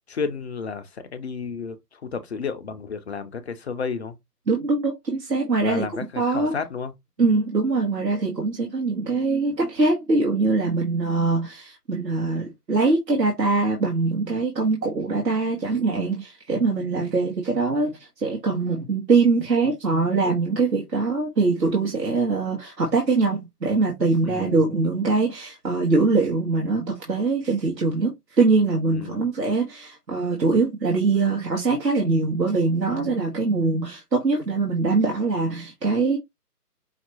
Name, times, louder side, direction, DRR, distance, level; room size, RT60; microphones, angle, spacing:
voice 1, 0.1-4.2 5.6-6.9 7.2-7.3 24.2-24.6 28.9-29.3, left 5 dB, 45° left, 0.8 m, -32 dB
voice 2, 4.5-5.9 6.2-6.6 7.2-36.2, right 3 dB, 90° right, 1.8 m, -23 dB
5.7 x 2.8 x 2.9 m
figure-of-eight pair, 145°, 48 cm